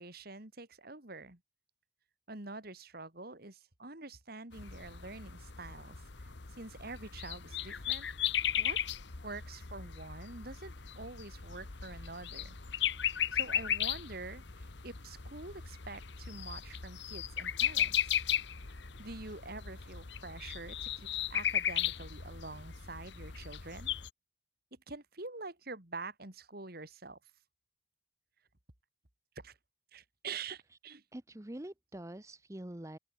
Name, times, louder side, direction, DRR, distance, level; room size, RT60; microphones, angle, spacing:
voice 1, 0.0-1.4 2.3-8.1 8.6-8.8 9.2-12.6 13.1-18.2 18.6-23.9 24.9-27.2 29.3-29.6 29.9-31.0, right 3 dB, 50° right, 3.0 m, -46 dB
sound 1, 4.5-24.1, left 10 dB, 60° left, 1.2 m, -36 dB
voice 2, 31.1-33.0, right 1 dB, 15° right, 0.8 m, -45 dB
open air
head